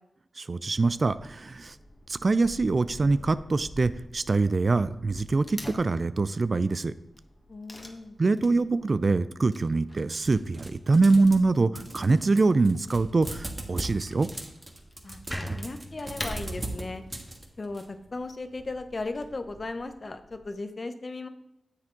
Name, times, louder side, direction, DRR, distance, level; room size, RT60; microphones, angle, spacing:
voice 1, 0.4-1.7 2.1-6.9 8.2-14.3, right 3 dB, 50° right, 14 dB, 0.4 m, -24 dB
Wood / Tearing, 0.9-20.5, left 1 dB, 30° left, 1.4 m, -47 dB
voice 2, 7.5-8.2 15.0-15.2 15.5-17.0 17.6-21.3, left 3 dB, 45° left, 9 dB, 0.8 m, -36 dB
sound 1, 10.2-11.5 11.8-17.8, right 2 dB, 30° right, 1.5 m, -39 dB
sound 2, 15.3-18.5, equal, 5° left, 0.8 m, -42 dB
9.7 x 7.3 x 3.8 m, 0.85 s
cardioid pair, 55°, 0 cm